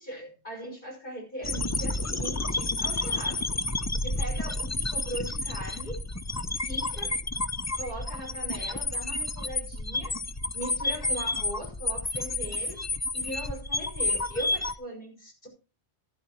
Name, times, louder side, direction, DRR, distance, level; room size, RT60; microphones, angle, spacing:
voice 1, 0.0-3.6 4.0-6.0 6.6-7.2 7.7-10.2 10.5-12.9 13.1-15.5, equal, 50° left, 6.4 m, -39 dB
sound 1, 1.4-14.7, left 2 dB, 25° left, 0.4 m, -30 dB
16.0 x 11.0 x 3.0 m
omnidirectional pair, 1.1 m